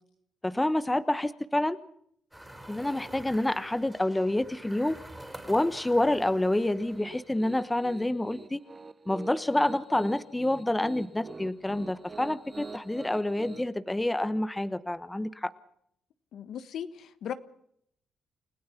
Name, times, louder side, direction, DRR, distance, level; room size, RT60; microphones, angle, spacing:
voice 1, 0.4-1.8 2.7-5.0 5.5-8.6 9.1-15.5, left 1 dB, 10° left, 13 dB, 1.0 m, -28 dB
sound 1, 2.3-7.5, right 1 dB, 5° right, 4.0 m, -47 dB
Piano, 6.8-13.6, right 4 dB, 30° right, 1.0 m, -45 dB
voice 2, 16.3-17.3, left 9 dB, 70° left, 11 dB, 1.4 m, -37 dB
30.0 x 16.5 x 5.8 m, 0.71 s
cardioid pair, 90°, 0 cm